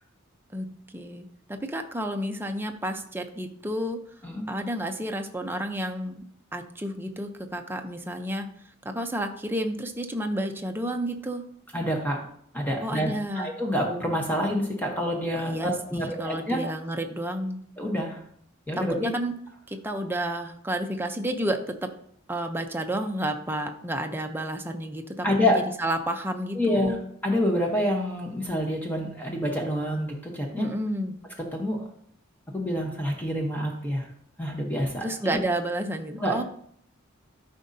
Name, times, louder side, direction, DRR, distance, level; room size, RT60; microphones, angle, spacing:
voice 1, 0.5-4.0 4.5-6.2 6.5-8.5 8.8-11.4 12.8-13.5 15.3-17.6 18.8-19.3 19.7-21.9 22.3-27.0 30.6-31.2 35.0-36.4, right 1 dB, 10° right, 4 dB, 0.7 m, -31 dB
voice 2, 11.7-12.2 12.5-16.6 17.8-18.2 18.7-19.1 25.2-25.6 26.5-26.9 27.2-30.7 31.4-31.9 32.5-34.1 34.4-35.4 36.2-36.4, equal, 10° left, 0 dB, 1.0 m, -27 dB
12.0 x 5.1 x 2.7 m, 0.66 s
head